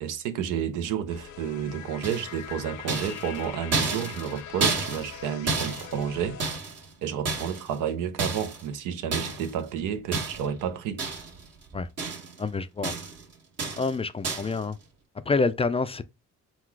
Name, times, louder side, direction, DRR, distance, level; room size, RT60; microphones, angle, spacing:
voice 1, 0.0-6.4 7.0-11.0, right 8 dB, 90° right, 0.7 m, -31 dB
sound 1, 1.1-6.6, left 9 dB, 75° left, 0.6 m, -42 dB
sound 2, 2.0-2.5 2.9-6.9 7.2-7.8 8.2-8.7 9.1-9.5 10.1-10.6 11.0-11.5 11.7-12.4 12.8-13.2 13.6-13.9 14.2-14.6, right 4 dB, 55° right, 1.7 m, -31 dB
voice 2, 12.4-12.9 13.7-14.8 15.3-16.0, left 4 dB, 20° left, 0.3 m, -27 dB
3.9 x 2.3 x 4.5 m
cardioid pair, 90°, 30 cm